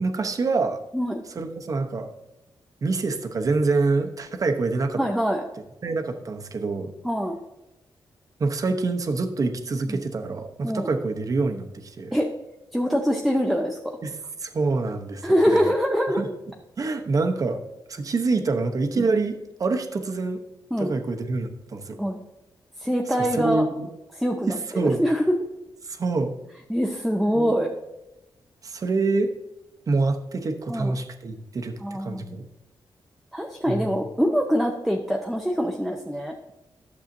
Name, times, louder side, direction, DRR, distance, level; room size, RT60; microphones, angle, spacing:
voice 1, 0.0-0.8 1.3-2.1 2.8-5.0 5.8-6.9 8.4-12.2 14.0-15.7 16.2-16.3 16.8-17.6 17.9-20.4 20.8-22.0 23.2-23.9 24.5-25.0 25.8-26.3 27.3-27.6 28.6-29.3 29.9-32.4 33.7-34.1, right 3 dB, 45° right, 5 dB, 0.9 m, -26 dB
voice 2, 5.0-5.4 7.0-7.4 9.9-10.0 10.6-10.9 12.1-12.3 12.7-13.8 15.2-16.2 19.0-19.1 20.7-20.9 22.0-22.2 22.8-23.6 24.2-25.4 26.7-27.7 30.7-31.0 31.8-32.4 33.3-36.4, equal, ahead, 1 dB, 0.6 m, -24 dB
11.5 x 7.1 x 2.7 m, 0.99 s
wide cardioid pair, 130°, 9 cm